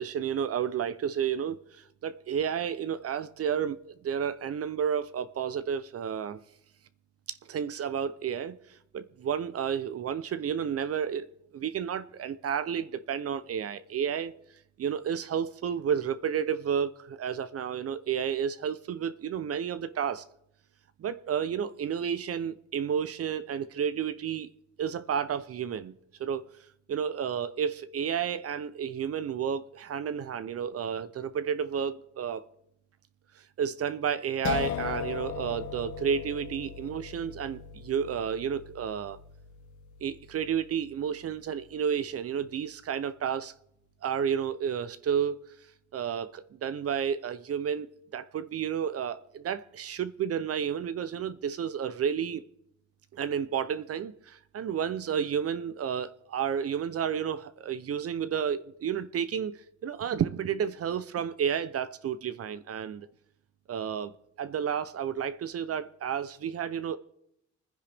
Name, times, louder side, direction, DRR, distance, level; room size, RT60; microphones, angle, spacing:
voice 1, 0.0-6.4 7.3-11.3 11.5-14.3 14.8-20.2 21.0-24.5 24.8-25.9 26.2-26.4 26.9-32.4 33.4-39.2 40.0-43.5 44.0-45.5 45.9-52.4 53.1-63.1 63.7-64.1 64.4-67.0, right 8 dB, 50° right, 0.7 m, -31 dB
sound 1, 34.4-41.4, left 8 dB, 75° left, 1.2 m, -38 dB
29.0 x 10.0 x 3.5 m
cardioid pair, 90°, 30 cm